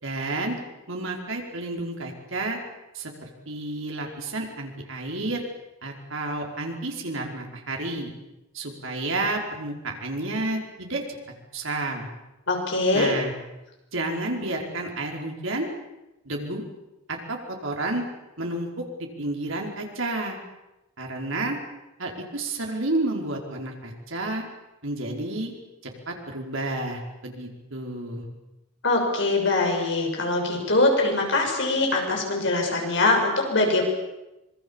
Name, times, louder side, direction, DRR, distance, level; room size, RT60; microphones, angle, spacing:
voice 1, 0.0-0.6 0.9-2.6 2.9-5.4 5.8-8.1 8.5-11.0 11.5-12.1 12.9-13.3 13.9-15.7 16.2-16.6 17.1-18.1 18.4-20.4 21.0-21.6 22.0-24.4 24.8-25.5 25.8-28.2, right 2 dB, 70° right, 1 dB, 5.1 m, -30 dB
voice 2, 12.5-13.1 28.8-33.8, left 2 dB, 60° left, 1 dB, 6.7 m, -22 dB
26.0 x 22.5 x 7.3 m, 0.97 s
head